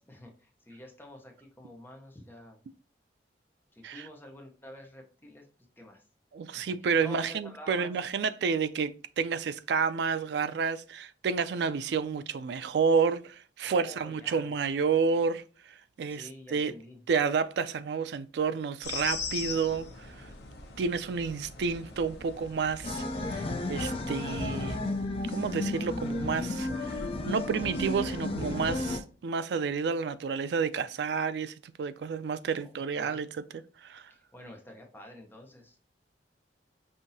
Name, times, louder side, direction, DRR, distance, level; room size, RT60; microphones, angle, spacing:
voice 1, 0.0-2.6 3.7-5.5 5.8-6.0 6.5-7.9 13.6-14.5 16.1-17.0 27.3-27.8 32.6-33.2 34.1-35.8, left 1 dB, 10° left, 0.8 m, -49 dB
voice 2, 6.3-16.7 17.1-20.3 20.8-24.8 25.3-33.3 33.8-34.1, right 5 dB, 70° right, 0.3 m, -30 dB
sound 1, 18.8-24.7, left 4 dB, 65° left, 1.0 m, -41 dB
sound 2, 22.8-29.0, left 2 dB, 35° left, 0.4 m, -33 dB
5.6 x 2.6 x 2.6 m
head